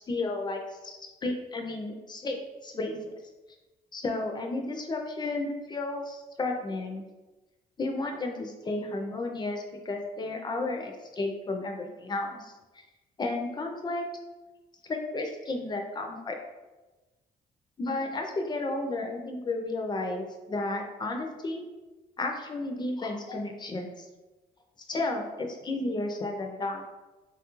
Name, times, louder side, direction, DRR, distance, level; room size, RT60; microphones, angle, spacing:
voice 1, 0.0-3.1 3.9-7.0 7.8-12.5 13.2-14.1 14.8-16.4 17.8-21.7 22.2-24.1 24.9-26.8, left 2 dB, 30° left, 3 dB, 0.4 m, -33 dB
3.0 x 2.3 x 2.9 m, 1.1 s
cardioid pair, 100°, 16 cm